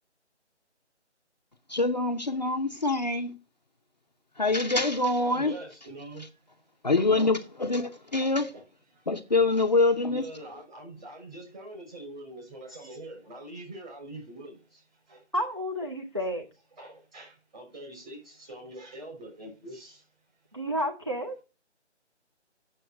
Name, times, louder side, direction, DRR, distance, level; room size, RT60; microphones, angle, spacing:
voice 1, 1.7-3.3 4.4-5.5 6.8-8.5 9.1-10.2, left 3 dB, 35° left, 0.7 m, -25 dB
voice 2, 4.7-6.3 7.2-7.3 7.5-8.8 9.3-15.2 16.2-20.1 20.5-20.6, right 1 dB, 40° right, 5.4 m, -45 dB
voice 3, 15.3-16.5 20.5-21.4, equal, 25° right, 0.6 m, -31 dB
7.8 x 6.9 x 6.4 m
figure-of-eight pair, 165°, 36 cm